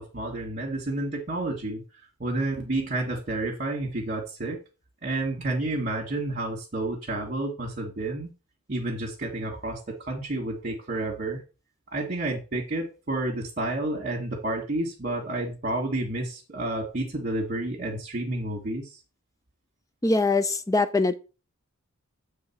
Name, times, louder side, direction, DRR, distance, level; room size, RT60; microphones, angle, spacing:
voice 1, 0.0-1.8 2.2-4.6 5.0-8.3 8.7-11.4 11.9-18.9, right 2 dB, 40° right, 1.7 m, -30 dB
voice 2, 20.0-21.2, left 3 dB, 15° left, 0.5 m, -23 dB
8.5 x 3.6 x 5.9 m
head